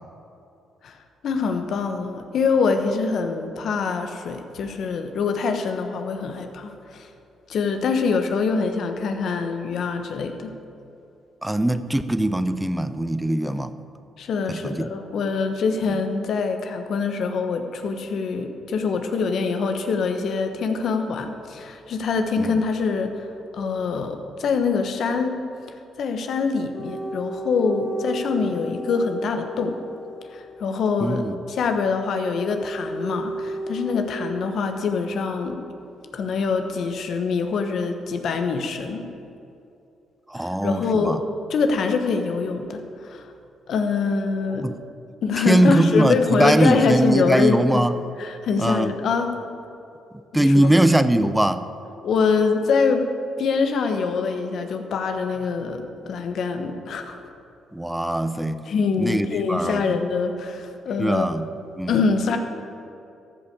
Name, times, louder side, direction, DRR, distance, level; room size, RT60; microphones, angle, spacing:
voice 1, 1.2-7.1 7.5-10.5 14.2-23.3 23.5-25.4 26.0-29.8 30.3-35.6 36.1-39.1 40.4-43.3 43.7-44.7 45.2-47.6 48.2-49.4 50.3-50.7 52.0-53.1 53.4-57.2 58.6-61.3 61.9-62.4, left 4 dB, 65° left, 6 dB, 1.1 m, -24 dB
voice 2, 11.4-13.7 14.5-14.9 22.4-22.5 31.0-31.4 40.3-41.2 44.6-44.8 45.4-47.9 48.6-48.9 50.3-51.7 57.7-58.6 59.0-60.0 61.0-62.0, right 1 dB, 10° right, 12 dB, 0.6 m, -21 dB
sound 1, 26.7-30.7 32.0-34.2, right 1 dB, 10° left, 2.6 m, -34 dB
14.0 x 5.5 x 6.7 m, 2.7 s
supercardioid pair, 55°, 0 cm